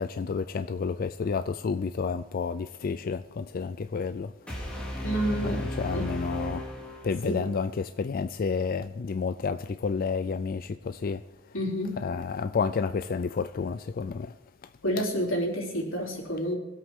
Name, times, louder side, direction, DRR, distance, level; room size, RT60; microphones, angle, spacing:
voice 1, 0.0-4.8 5.4-6.6 7.0-11.2 12.0-14.3, left 5 dB, 45° left, 10 dB, 0.4 m, -30 dB
sound 1, 4.5-7.5, equal, 5° left, 2.7 m, -35 dB
voice 2, 5.0-6.1 7.2-7.4 11.5-12.0 14.8-16.6, equal, 90° left, -1 dB, 3.3 m, -29 dB
23.5 x 8.2 x 3.7 m, 1.1 s
head